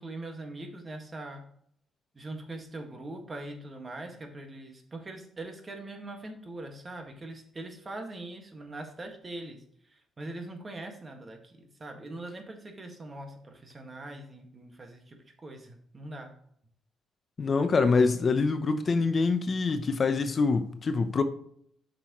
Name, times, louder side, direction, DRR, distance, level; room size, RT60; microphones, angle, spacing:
voice 1, 0.0-1.4 2.1-9.6 9.8-16.3, right 2 dB, 30° right, 1.7 m, -42 dB
voice 2, 17.4-21.2, left 4 dB, 40° left, 0.7 m, -25 dB
8.7 x 6.0 x 3.0 m
cardioid pair, 90°, 0 cm